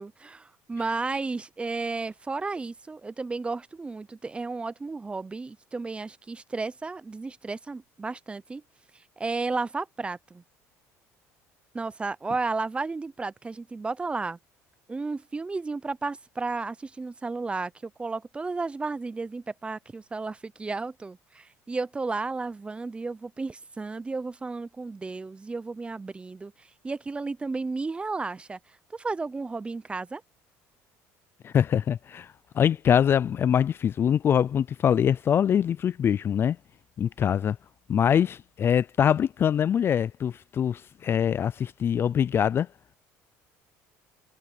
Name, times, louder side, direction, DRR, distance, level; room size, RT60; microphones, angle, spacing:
voice 1, 0.0-8.6 9.2-10.4 11.7-14.4 14.9-28.6 28.9-30.2, right 3 dB, 15° right, 0.6 m, -33 dB
voice 2, 31.4-32.3 32.5-36.6 37.0-37.6 37.9-42.7, left 8 dB, 35° left, 0.4 m, -23 dB
cardioid pair, 110°, 7 cm